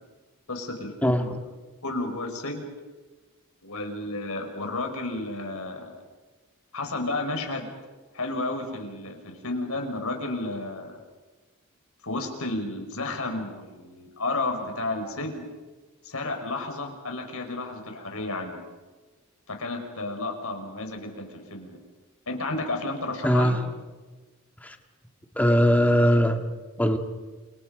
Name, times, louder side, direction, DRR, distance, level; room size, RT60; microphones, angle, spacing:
voice 1, 0.5-1.4 1.8-2.7 3.6-5.9 6.7-7.7 8.1-11.0 12.0-15.4 16.0-18.6 19.5-21.8 22.3-23.5, left 2 dB, 70° left, 3 dB, 5.8 m, -32 dB
voice 2, 1.0-1.3 23.2-23.6 24.6-24.8 25.4-26.4 26.8-27.0, equal, 5° left, 5 dB, 2.1 m, -20 dB
29.5 x 29.5 x 5.3 m, 1.3 s
head